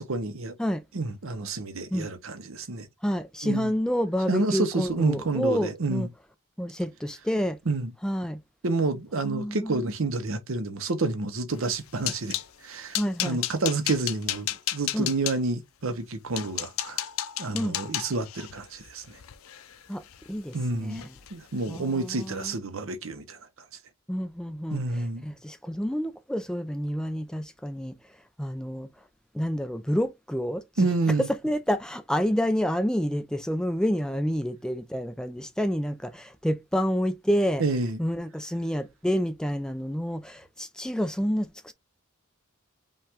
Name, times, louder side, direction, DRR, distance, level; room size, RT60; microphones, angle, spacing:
voice 1, 0.0-0.5 0.9-2.9 3.4-3.7 4.3-6.1 7.7-7.9 8.6-12.4 12.6-17.0 17.4-19.2 20.5-21.0 21.3-23.4 24.7-25.2 30.8-31.3 37.6-38.0, right 3 dB, 75° right, 0.8 m, -29 dB
voice 2, 3.0-6.1 6.6-7.6 8.0-8.4 9.2-9.8 13.0-13.4 14.9-15.1 17.5-17.8 19.9-21.1 21.7-22.5 24.1-28.0 28.4-28.9 29.3-30.9 31.4-37.6 38.0-41.7, equal, 5° left, 0.4 m, -29 dB
sound 1, 11.6-12.5 12.9-15.4 16.0-16.1 16.4-20.6 20.9-21.3 21.6-21.8 22.2-22.4, left 12 dB, 80° left, 0.5 m, -33 dB
5.3 x 2.4 x 3.4 m
head